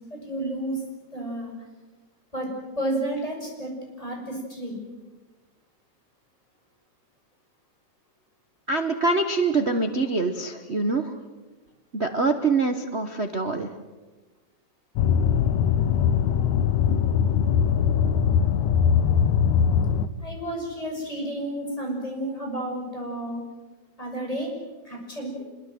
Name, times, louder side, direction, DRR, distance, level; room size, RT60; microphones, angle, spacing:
voice 1, 0.1-0.8 1.1-1.5 2.3-2.5 2.8-3.7 4.0-4.8 20.2-23.4 24.0-24.5 24.8-25.4, right 1 dB, 10° left, 0 dB, 7.0 m, -31 dB
voice 2, 8.7-11.1 11.9-13.7, right 3 dB, 85° right, 6 dB, 0.5 m, -24 dB
sound 1, 15.0-20.1, left 8 dB, 80° left, 2.3 m, -21 dB
25.5 x 22.5 x 7.8 m, 1.2 s
omnidirectional pair, 3.3 m